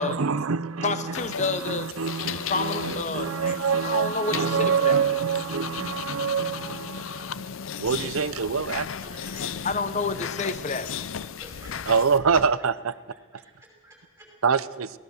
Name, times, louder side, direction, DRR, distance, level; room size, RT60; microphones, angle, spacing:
voice 1, 0.0-7.4 7.8-8.9 11.9-12.9 14.4-14.9, right 6 dB, 85° right, 16 dB, 0.7 m, -26 dB
voice 2, 0.8-1.9 2.5-5.0 9.6-10.9, left 4 dB, 35° left, 11 dB, 1.0 m, -29 dB
sound 1, 1.1-12.5, left 7 dB, 75° left, 0.5 m, -35 dB
voice 3, 8.9-9.7 11.4-12.2 13.3-14.3, right 1 dB, 10° right, -1 dB, 5.3 m, -49 dB
23.0 x 17.5 x 6.5 m, 1.4 s
head